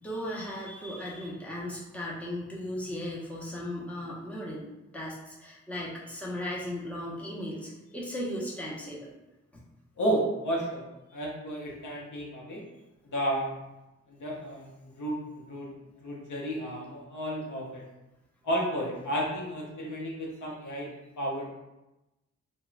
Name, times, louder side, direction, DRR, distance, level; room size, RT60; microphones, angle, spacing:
voice 1, 0.0-4.7 4.9-9.1 11.1-11.2, left 1 dB, 5° left, -5 dB, 0.6 m, -36 dB
voice 2, 10.0-10.9 11.1-12.6 13.0-13.5 14.1-15.7 16.0-17.8 18.4-20.9 21.2-21.5, right 1 dB, 90° left, -3 dB, 0.7 m, -32 dB
3.1 x 2.1 x 2.4 m, 0.99 s
wide cardioid pair, 85°, 29 cm